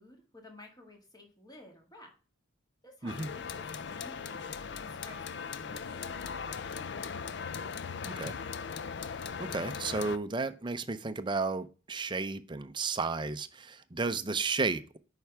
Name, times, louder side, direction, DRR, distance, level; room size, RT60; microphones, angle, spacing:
voice 1, 0.0-2.1 2.8-7.2, left 1 dB, 20° left, 1.9 m, -54 dB
sound 1, 3.1-10.2, left 6 dB, 60° left, 0.5 m, -39 dB
voice 2, 8.0-8.3 9.4-15.0, right 4 dB, 25° right, 0.5 m, -33 dB
9.0 x 5.6 x 3.5 m
head